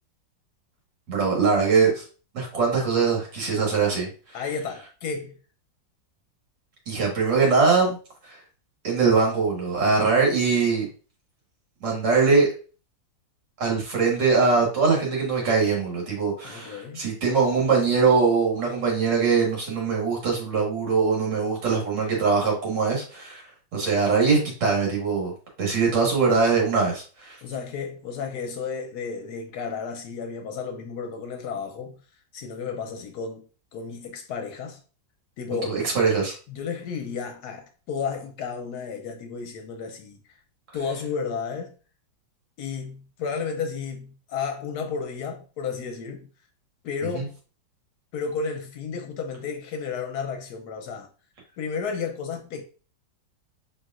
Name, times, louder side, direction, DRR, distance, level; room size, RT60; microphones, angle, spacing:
voice 1, 1.1-2.0 2.3-4.1 6.9-8.0 8.8-10.9 11.8-12.5 13.6-23.4 23.7-25.3 25.6-27.4 35.7-36.3 47.1-47.2, right 4 dB, 75° right, 2.2 m, -22 dB
voice 2, 4.3-5.3 16.4-17.0 27.4-32.0 32.3-33.4 33.7-34.8 35.4-35.8 36.5-40.2 40.7-41.7 42.6-46.3 46.8-47.3 48.1-51.1 51.6-52.6, left 5 dB, 70° left, 1.1 m, -32 dB
5.1 x 3.1 x 2.4 m
omnidirectional pair, 1.9 m